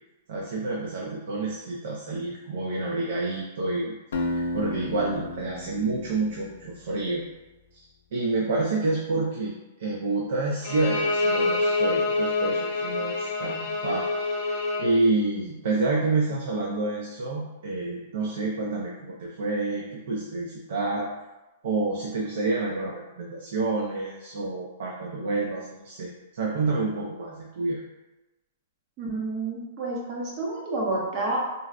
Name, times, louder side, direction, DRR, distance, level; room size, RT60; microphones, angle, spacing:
voice 1, 0.3-7.2 7.7-9.5 9.8-14.1 14.4-21.1 21.6-27.8, right 3 dB, 60° right, -2 dB, 0.4 m, -28 dB
Acoustic guitar, 4.1-7.1, left 1 dB, 85° left, 0.4 m, -33 dB
Bowed string instrument, 10.6-14.9, left 3 dB, 30° left, 0.7 m, -26 dB
voice 2, 29.0-31.4, right 2 dB, 25° right, -3 dB, 0.7 m, -29 dB
3.8 x 2.1 x 2.4 m, 1.0 s
hypercardioid pair, 175°, 0 cm